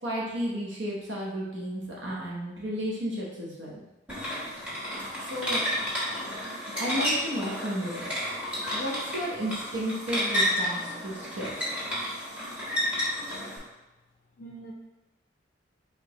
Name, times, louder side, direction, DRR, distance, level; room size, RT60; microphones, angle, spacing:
voice 1, 0.0-3.7 5.2-5.6 6.8-8.0 8.5-11.5, equal, 85° right, -5 dB, 1.0 m, -33 dB
sound 1, 4.1-13.6, equal, 5° right, 1.4 m, -31 dB
voice 2, 12.7-13.3 14.4-14.7, right 3 dB, 50° left, -1 dB, 0.4 m, -47 dB
4.8 x 3.3 x 3.0 m, 1.1 s
head